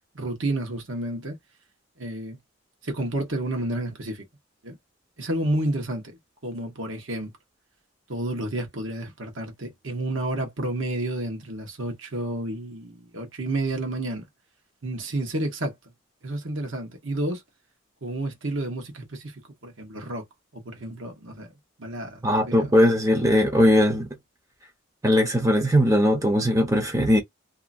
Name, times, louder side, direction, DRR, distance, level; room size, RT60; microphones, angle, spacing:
voice 1, 0.1-1.4 2.0-2.4 2.8-4.2 4.6-4.8 5.2-7.3 8.1-14.3 14.8-15.7 16.2-17.4 18.0-20.2 20.5-21.5 21.8-22.8, right 1 dB, 70° right, 1.2 m, -30 dB
voice 2, 22.2-24.1 25.0-27.2, equal, 15° right, 0.7 m, -19 dB
2.8 x 2.5 x 2.5 m
head